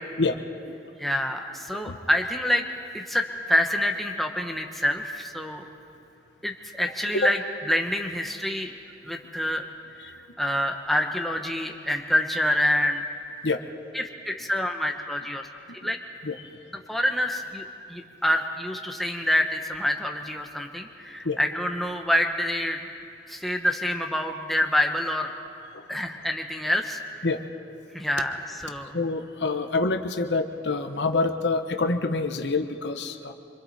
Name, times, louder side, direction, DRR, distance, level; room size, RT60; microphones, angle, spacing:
voice 1, 1.0-2.6 2.9-5.6 6.4-8.7 9.0-9.6 10.0-13.0 13.9-15.5 15.8-16.0 16.7-22.8 23.3-25.3 25.9-27.3 27.9-29.0, left 1 dB, ahead, 3 dB, 1.1 m, -27 dB
voice 2, 28.9-33.3, left 3 dB, 75° left, 7 dB, 1.0 m, -26 dB
26.0 x 25.0 x 4.2 m, 2.6 s
head